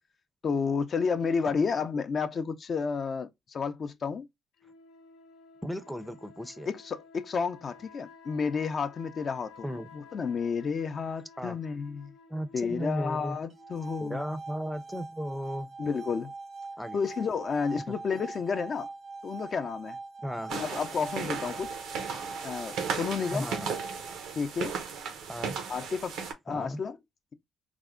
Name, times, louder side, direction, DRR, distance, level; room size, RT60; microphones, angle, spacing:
voice 1, 0.4-4.3 6.7-9.7 9.9-12.1 12.5-14.2 15.8-16.3 16.9-18.9 19.2-20.0 20.5-21.8 22.4-23.5 24.4-24.8 25.7-26.9, left 5 dB, 50° left, 0.5 m, -31 dB
sound 1, 4.6-14.3, left 4 dB, 85° left, 0.7 m, -54 dB
voice 2, 5.6-6.7 9.6-9.9 11.4-11.6 12.3-13.4 14.0-15.7 16.8-17.0 17.9-18.0 20.2-20.5 23.3-23.7 25.3-25.6 26.5-26.8, equal, ahead, 0.5 m, -35 dB
sound 2, 13.5-24.5, right 3 dB, 55° right, 0.5 m, -43 dB
sound 3, 20.5-26.3, right 6 dB, 85° right, 0.8 m, -36 dB
3.4 x 2.1 x 3.6 m
cardioid pair, 90°, 0 cm